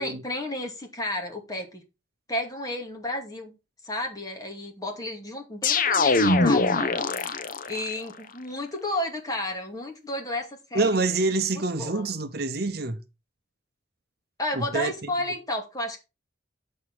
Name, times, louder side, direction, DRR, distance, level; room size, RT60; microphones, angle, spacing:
voice 1, 0.0-1.8 2.3-3.5 3.8-7.4 7.7-10.9 11.8-12.0 14.4-16.0, left 1 dB, 20° left, 2.2 m, -32 dB
sound 1, 5.6-7.9, left 3 dB, 45° left, 0.8 m, -22 dB
voice 2, 10.7-13.0 14.5-15.1, right 3 dB, 50° right, 0.9 m, -26 dB
8.5 x 6.7 x 4.7 m
head